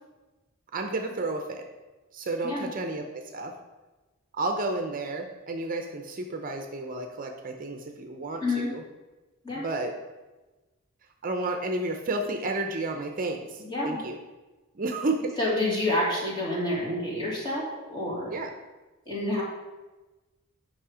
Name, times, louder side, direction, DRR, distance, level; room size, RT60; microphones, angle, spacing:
voice 1, 0.7-1.6 2.1-3.5 4.3-8.8 9.5-9.9 11.2-14.2 14.7-15.4 18.3-18.5, right 2 dB, 40° right, 4 dB, 0.7 m, -31 dB
voice 2, 13.6-14.0 15.4-18.3 19.1-19.4, left 1 dB, 20° left, -5 dB, 2.7 m, -28 dB
8.6 x 5.6 x 4.9 m, 1.2 s
head